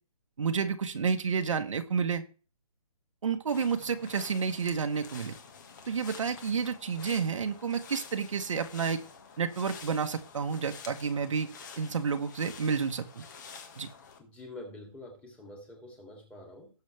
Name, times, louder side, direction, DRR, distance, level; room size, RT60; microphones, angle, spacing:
voice 1, 0.4-2.2 3.2-5.3 5.9-9.0 9.4-11.5 11.8-13.2 13.8-13.9, right 6 dB, 55° right, 6 dB, 1.4 m, -30 dB
sound 1, 3.5-14.2, left 6 dB, 30° left, 1.9 m, -49 dB
voice 2, 14.2-16.7, left 1 dB, 5° left, 0 dB, 2.9 m, -46 dB
19.0 x 7.2 x 3.5 m, 0.37 s
hypercardioid pair, 165°, 19 cm